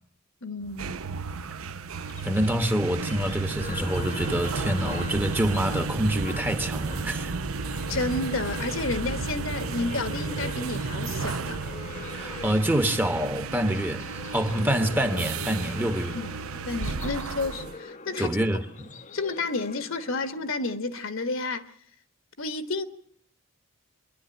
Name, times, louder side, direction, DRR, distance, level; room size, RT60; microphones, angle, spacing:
voice 1, 0.4-1.0 7.9-11.6 16.1-16.3 16.6-18.4 19.1-21.7 22.4-22.8, left 3 dB, 60° left, 1.3 m, -31 dB
sound 1, 0.6-17.8, right 4 dB, 75° right, 0.7 m, -33 dB
sound 2, 2.0-20.6, left 4 dB, 35° left, 0.7 m, -43 dB
voice 2, 2.2-7.3 12.1-14.0 14.3-16.2 18.2-18.9, right 1 dB, 10° right, 1.0 m, -26 dB
26.5 x 11.5 x 8.9 m
head